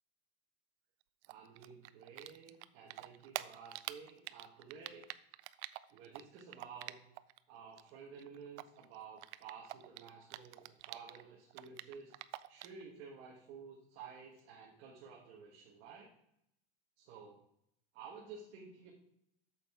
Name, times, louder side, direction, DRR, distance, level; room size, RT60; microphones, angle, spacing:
Typing, 1.2-2.7 2.9-7.4 7.6-11.2 11.5-12.8, right 17 dB, 85° right, 0.5 m, -46 dB
voice 1, 1.3-5.1 5.9-7.0 7.5-12.1 12.5-16.1 17.0-17.4 17.9-18.9, right 6 dB, 40° right, -3 dB, 1.4 m, -52 dB
8.7 x 6.5 x 3.6 m, 0.76 s
supercardioid pair, 175°, 34 cm